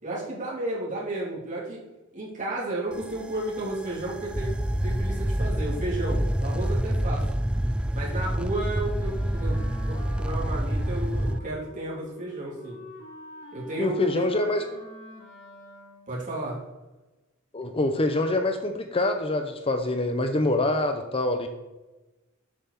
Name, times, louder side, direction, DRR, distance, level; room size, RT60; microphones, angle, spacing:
voice 1, 0.0-1.8 2.1-4.6 4.8-7.2 7.9-9.6 9.8-12.8 13.5-14.2 16.1-16.6, right 2 dB, 40° right, -6 dB, 3.3 m, -32 dB
sound 1, 2.9-11.4, equal, 5° right, 0.3 m, -27 dB
Wind instrument woodwind instrument, 9.1-16.2, left 1 dB, 65° left, 2.7 m, -46 dB
voice 2, 13.8-14.8 17.5-21.5, left 2 dB, 25° left, 6 dB, 0.7 m, -25 dB
8.3 x 5.9 x 6.9 m, 1.1 s
head